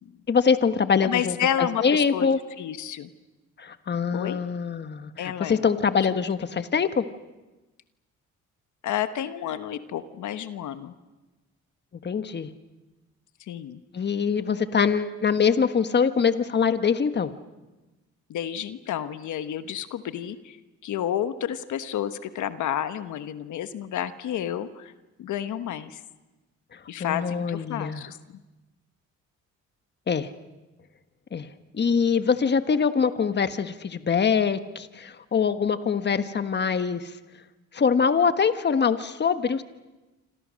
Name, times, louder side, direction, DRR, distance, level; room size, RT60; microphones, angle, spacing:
voice 1, 0.3-2.4 3.6-7.1 12.0-12.5 13.9-17.3 26.7-28.0 30.1-30.3 31.3-31.5 31.7-37.1 37.7-39.6, left 6 dB, 35° left, 10 dB, 1.3 m, -24 dB
voice 2, 1.0-2.3 2.6-3.1 4.1-4.4 5.2-5.6 6.1-6.2 8.8-10.9 13.5-13.8 18.3-20.6 20.8-24.9 25.2-26.0 26.9-28.2, left 10 dB, 75° left, 10 dB, 1.2 m, -30 dB
27.0 x 27.0 x 6.4 m, 1.1 s
cardioid pair, 90°, 30 cm